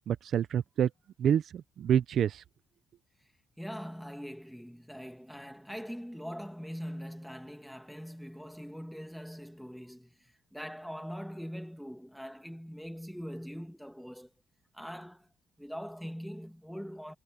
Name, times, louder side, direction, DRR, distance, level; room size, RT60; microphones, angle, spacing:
voice 1, 0.1-0.9 1.2-2.4, right 9 dB, 55° right, 0.5 m, -27 dB
voice 2, 3.6-14.3 14.7-15.3 15.6-17.1, equal, ahead, 1.7 m, -42 dB
cardioid pair, 170°, 0 cm